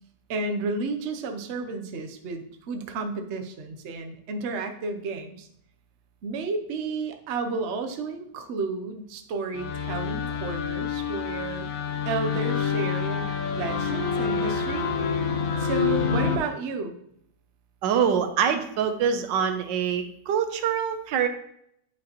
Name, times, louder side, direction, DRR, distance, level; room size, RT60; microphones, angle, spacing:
voice 1, 0.3-5.5 6.2-11.7 12.1-13.3 13.5-14.9 15.6-17.0, right 4 dB, 55° right, 5 dB, 0.8 m, -32 dB
sound 1, 9.5-16.4, left 6 dB, 60° left, 1.1 m, -27 dB
voice 2, 17.8-21.3, right 7 dB, 85° right, 8 dB, 1.4 m, -25 dB
9.4 x 4.8 x 3.0 m, 0.74 s
omnidirectional pair, 1.9 m